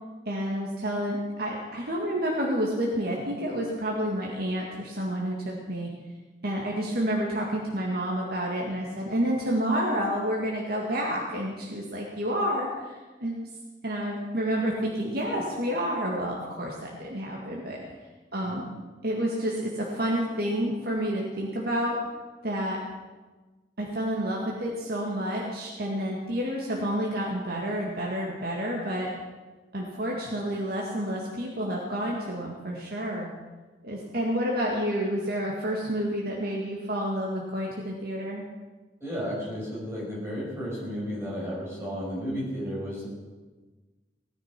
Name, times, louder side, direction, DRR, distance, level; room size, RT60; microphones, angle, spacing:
voice 1, 0.3-5.9 6.4-13.4 13.8-17.8 18.3-18.7 19.0-22.0 22.4-22.8 23.8-29.1 29.7-33.3 33.8-38.4, equal, 60° right, -2 dB, 2.1 m, -29 dB
voice 2, 39.0-43.1, equal, 15° right, -6 dB, 6.1 m, -33 dB
18.0 x 9.8 x 6.1 m, 1.3 s
head